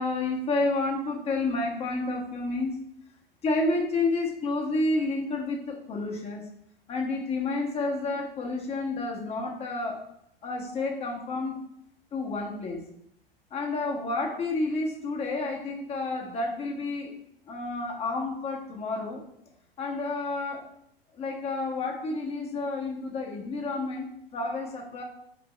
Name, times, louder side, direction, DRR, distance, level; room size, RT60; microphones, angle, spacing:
voice 1, 0.0-2.8 3.4-6.4 6.9-10.0 10.4-11.5 12.1-12.8 13.5-17.1 17.5-19.2 19.8-20.6 21.1-25.0, left 2 dB, 20° left, 1 dB, 1.4 m, -30 dB
7.6 x 3.3 x 4.1 m, 0.74 s
figure-of-eight pair, 95°, 29 cm